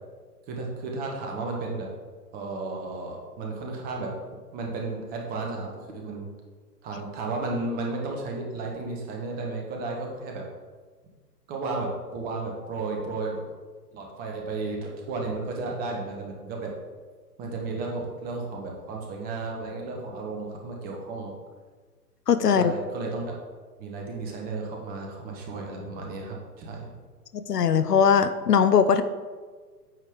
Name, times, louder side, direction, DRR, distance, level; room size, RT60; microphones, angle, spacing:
voice 1, 0.5-1.9 2.3-4.1 4.5-6.3 6.8-10.4 11.5-13.4 13.9-16.7 17.4-21.3 22.5-23.3 23.8-26.9, right 3 dB, 20° right, 0 dB, 1.2 m, -33 dB
voice 2, 22.3-22.7 27.3-29.0, left 7 dB, 70° left, 11 dB, 0.7 m, -20 dB
9.1 x 6.4 x 3.7 m, 1.5 s
figure-of-eight pair, 125°, 48 cm